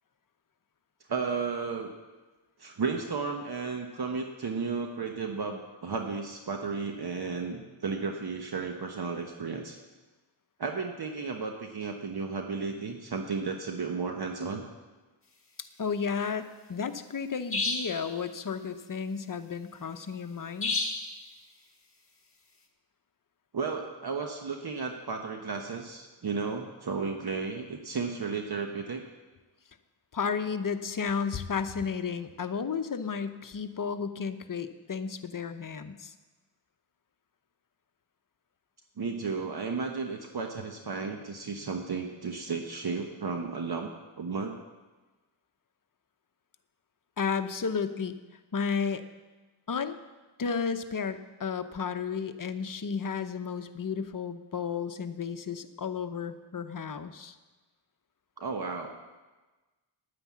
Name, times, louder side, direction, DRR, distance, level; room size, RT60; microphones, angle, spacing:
voice 1, 1.1-1.9 2.6-9.8 10.6-14.7 23.5-29.0 39.0-43.9 44.2-44.6 58.4-59.0, right 4 dB, 55° right, 3 dB, 1.2 m, -33 dB
voice 2, 15.8-20.7 30.1-36.1 47.2-48.2 48.5-49.0 49.7-50.0 50.4-57.3, left 6 dB, 45° left, 9 dB, 0.9 m, -33 dB
sound 1, 17.5-18.0 20.6-21.1, left 3 dB, 30° left, 1.9 m, -29 dB
10.0 x 9.6 x 7.4 m, 1.2 s
wide cardioid pair, 80°, 47 cm